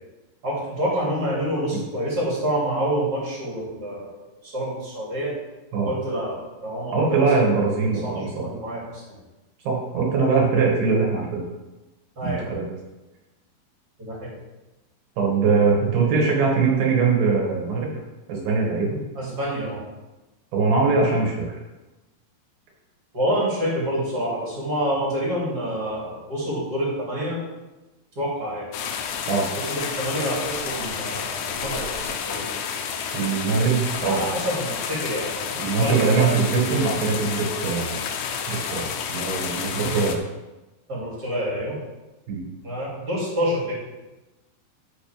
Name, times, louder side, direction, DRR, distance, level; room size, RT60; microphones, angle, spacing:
voice 1, 0.4-4.1 4.4-5.3 5.8-6.4 6.6-7.4 8.0-9.0 12.2-12.5 14.0-14.3 19.1-19.9 23.1-27.5 28.1-28.7 29.6-32.5 34.0-36.3 40.9-41.8 42.6-43.7, equal, 25° right, -6 dB, 2.6 m, -27 dB
voice 2, 6.9-8.4 9.6-11.4 12.2-12.6 15.2-17.9 18.3-19.0 20.5-21.5 29.3-29.5 33.1-34.2 35.6-38.1 38.5-40.2 42.3-42.4, right 4 dB, 55° right, -2 dB, 3.2 m, -22 dB
sound 1, 28.7-40.2, left 7 dB, 90° left, 3.4 m, -30 dB
11.5 x 7.0 x 3.5 m, 1.1 s
omnidirectional pair, 5.6 m